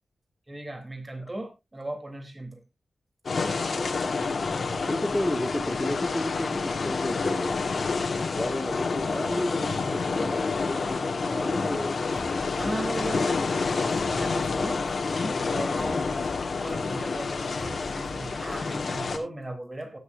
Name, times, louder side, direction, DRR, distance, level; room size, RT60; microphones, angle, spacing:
voice 1, 0.5-2.6 12.5-13.3 14.1-16.1 16.6-20.0, right 1 dB, 25° right, 3.5 m, -37 dB
sound 1, 3.3-19.2, left 4 dB, 70° left, 1.7 m, -28 dB
voice 2, 4.9-7.6 8.3-12.0, left 1 dB, 15° left, 2.0 m, -32 dB
sound 2, 12.2-19.3, left 3 dB, 45° left, 1.7 m, -45 dB
17.5 x 7.0 x 2.6 m
wide cardioid pair, 75°, 0 cm